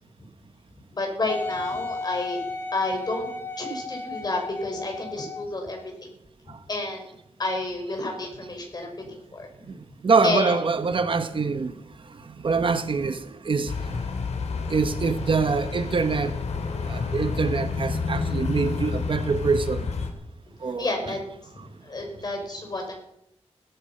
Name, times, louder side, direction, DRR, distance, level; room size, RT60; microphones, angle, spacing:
voice 1, 0.9-2.4 2.7-3.3 3.6-5.9 6.5-7.1 7.4-9.5 10.2-10.6 14.6-14.7 20.8-21.2 21.8-23.0, left 2 dB, 40° left, 6.0 m, -30 dB
Wind instrument woodwind instrument, 1.3-5.6 6.3-6.4, left 3 dB, 20° left, 1.8 m, -34 dB
voice 2, 10.0-11.7 12.4-13.7 14.7-16.3 16.9-19.9 20.6-21.2, right 4 dB, 50° right, 1.2 m, -24 dB
sound 1, 13.7-20.1, left 4 dB, 90° left, 3.1 m, -29 dB
17.5 x 14.0 x 5.8 m
wide cardioid pair, 135°, 11 cm